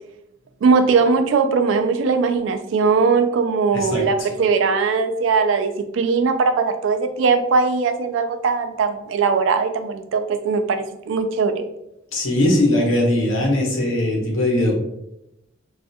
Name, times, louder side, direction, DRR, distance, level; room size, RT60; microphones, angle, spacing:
voice 1, 0.6-11.7, right 4 dB, 70° right, 7 dB, 0.3 m, -20 dB
voice 2, 3.7-4.0 12.1-14.7, left 1 dB, 80° left, -2 dB, 0.9 m, -20 dB
2.3 x 2.1 x 2.7 m, 0.85 s
head